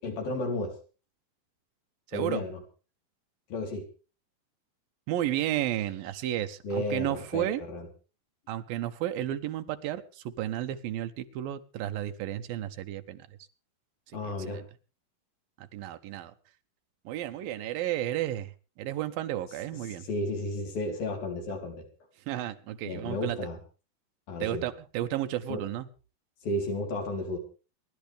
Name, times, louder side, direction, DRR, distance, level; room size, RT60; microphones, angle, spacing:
voice 1, 0.0-0.8 2.1-2.6 3.5-3.9 6.6-7.9 14.1-14.6 20.0-21.9 22.8-23.6 24.3-24.7 25.5-25.6 26.4-27.4, left 2 dB, 70° left, 3 dB, 5.7 m, -33 dB
voice 2, 2.1-2.4 5.1-7.6 8.5-13.3 14.2-14.6 15.7-16.3 17.1-18.5 18.8-20.1 22.3-23.4 24.4-25.9, right 12 dB, 75° right, 9 dB, 2.8 m, -32 dB
28.0 x 12.0 x 3.5 m, 0.35 s
omnidirectional pair, 4.3 m